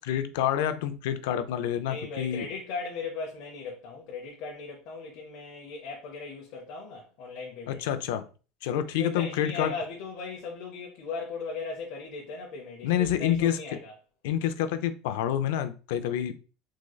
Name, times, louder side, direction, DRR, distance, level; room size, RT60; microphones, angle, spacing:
voice 1, 0.0-2.5 7.7-8.3 8.6-9.7 12.8-13.6 14.2-16.4, left 10 dB, 85° left, 0.4 m, -28 dB
voice 2, 1.8-7.8 8.9-13.9, left 4 dB, 55° left, 0.7 m, -38 dB
3.6 x 3.1 x 2.3 m
cardioid pair, 175°, 0 cm